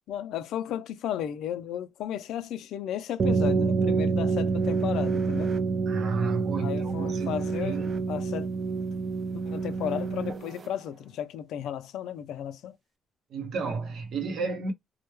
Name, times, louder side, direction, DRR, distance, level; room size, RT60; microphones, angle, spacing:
voice 1, 0.1-5.5 6.6-8.5 9.3-12.8, left 10 dB, 85° left, 0.4 m, -34 dB
sound 1, 3.2-10.7, right 4 dB, 35° right, 0.3 m, -27 dB
voice 2, 5.9-7.9 13.3-14.7, right 4 dB, 65° right, 0.7 m, -32 dB
2.2 x 2.1 x 3.0 m
cardioid pair, 155°, 0 cm